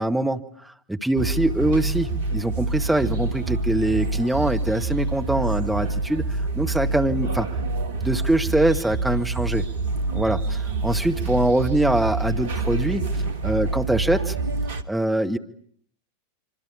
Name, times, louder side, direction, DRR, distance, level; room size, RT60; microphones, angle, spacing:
voice 1, 0.0-7.5 8.0-9.7 10.1-13.0 13.4-14.3 14.9-15.4, right 1 dB, 5° right, 4 dB, 1.8 m, -23 dB
sound 1, 1.2-14.8, right 3 dB, 60° right, 1.8 m, -26 dB
26.0 x 25.5 x 8.5 m, 0.63 s
figure-of-eight pair, 90°, 0 cm